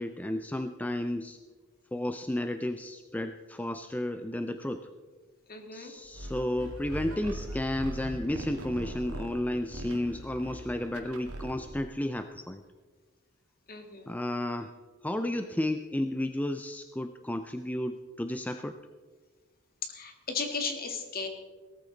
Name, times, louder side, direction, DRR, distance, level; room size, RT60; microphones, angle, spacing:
voice 1, 0.0-1.4 1.9-4.9 5.7-12.6 14.1-14.7 15.0-18.8, left 1 dB, 5° left, 8 dB, 0.5 m, -32 dB
voice 2, 5.5-5.9 13.7-14.1 19.8-21.3, left 4 dB, 45° left, 5 dB, 1.9 m, -35 dB
sound 1, 6.1-11.9, right 1 dB, 90° right, 2.1 m, -40 dB
18.0 x 13.5 x 4.0 m, 1.4 s
head